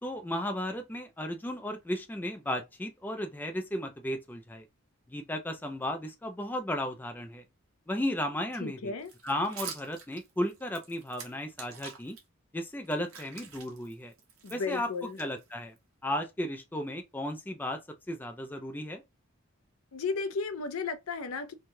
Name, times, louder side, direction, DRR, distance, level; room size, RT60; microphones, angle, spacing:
voice 1, 0.0-4.7 5.1-7.4 7.9-8.9 9.2-12.2 12.5-14.1 14.5-14.9 15.2-15.7 16.0-17.8 18.1-19.0, left 1 dB, 10° left, 0.3 m, -34 dB
voice 2, 8.6-9.1 14.4-15.2 19.9-21.5, left 4 dB, 80° left, 0.5 m, -34 dB
sound 1, 9.0-12.2 12.7-15.8, right 6 dB, 80° right, 0.9 m, -47 dB
3.1 x 2.3 x 2.6 m
head